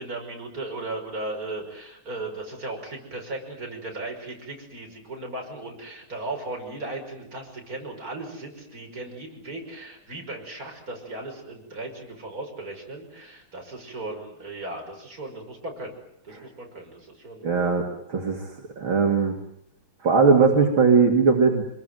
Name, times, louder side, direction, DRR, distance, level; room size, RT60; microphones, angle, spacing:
voice 1, 0.0-15.9 16.2-17.5, right 2 dB, 40° right, 2 dB, 6.3 m, -36 dB
voice 2, 17.4-18.5 18.8-19.3 20.0-21.6, right 5 dB, 70° right, 2 dB, 3.3 m, -19 dB
26.0 x 21.5 x 9.3 m, 0.74 s
omnidirectional pair, 2.3 m